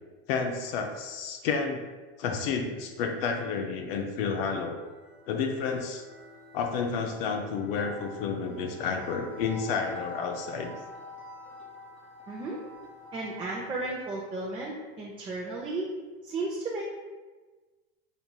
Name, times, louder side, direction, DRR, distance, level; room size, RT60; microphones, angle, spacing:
voice 1, 0.3-1.8 2.2-4.8 5.3-6.0 6.5-10.7, left 5 dB, 70° left, 4 dB, 0.5 m, -30 dB
sound 1, 4.7-14.2, left 3 dB, 40° left, 0.9 m, -47 dB
voice 2, 12.3-12.6 13.1-15.9 16.2-16.8, right 2 dB, 15° right, -4 dB, 0.5 m, -34 dB
5.3 x 2.9 x 2.2 m, 1.3 s
supercardioid pair, 120°, 31 cm